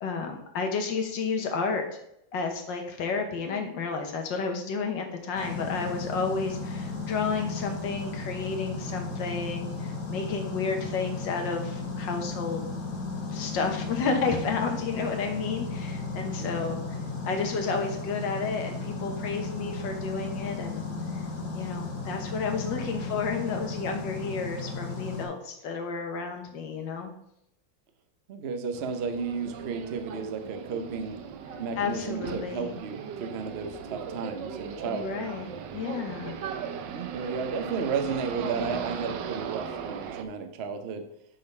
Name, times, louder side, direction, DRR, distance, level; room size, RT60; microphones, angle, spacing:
voice 1, 0.0-1.8 2.3-12.7 13.3-17.0 17.2-20.9 21.1-21.2 21.5-27.1 31.7-32.8 34.9-36.4, left 4 dB, 70° left, 4 dB, 1.7 m, -31 dB
sound 1, 5.4-25.3, left 3 dB, 40° left, 1.4 m, -35 dB
voice 2, 16.4-16.8 28.3-31.2 31.6-35.2 36.9-41.0, right 5 dB, 55° right, 7 dB, 0.7 m, -33 dB
sound 2, 28.7-40.2, right 7 dB, 75° right, 1.3 m, -38 dB
7.5 x 4.0 x 5.4 m, 0.77 s
omnidirectional pair, 2.1 m